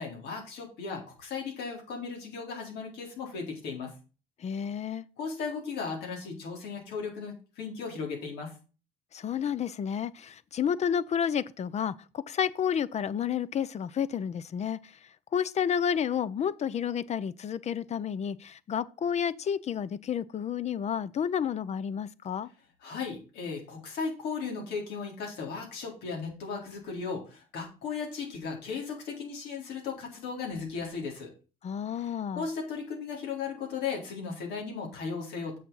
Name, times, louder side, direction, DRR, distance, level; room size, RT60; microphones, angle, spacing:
voice 1, 0.0-3.9 5.2-8.5 22.8-31.3 32.0-35.6, left 5 dB, 80° left, 3.9 m, -36 dB
voice 2, 4.4-5.0 9.1-15.0 15.3-22.5 31.6-32.5, left 8 dB, 40° left, 0.6 m, -30 dB
7.5 x 6.9 x 5.6 m
cardioid pair, 110°, 17 cm